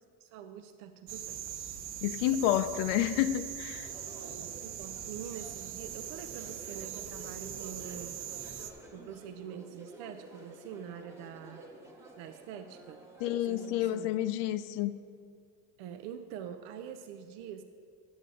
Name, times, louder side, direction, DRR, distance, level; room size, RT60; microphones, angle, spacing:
voice 1, 0.2-1.5 4.1-8.3 8.9-11.7 11.9-13.1 13.4-14.1 15.8-17.6, right 8 dB, 90° right, 0.5 m, -45 dB
sound 1, 1.1-8.7, right 10 dB, 40° right, 0.6 m, -41 dB
voice 2, 2.0-3.9 13.2-14.9, left 12 dB, 90° left, 0.5 m, -29 dB
sound 2, 3.7-14.0, right 1 dB, 10° right, 0.9 m, -52 dB
10.0 x 7.8 x 3.8 m
cardioid pair, 150°, 32 cm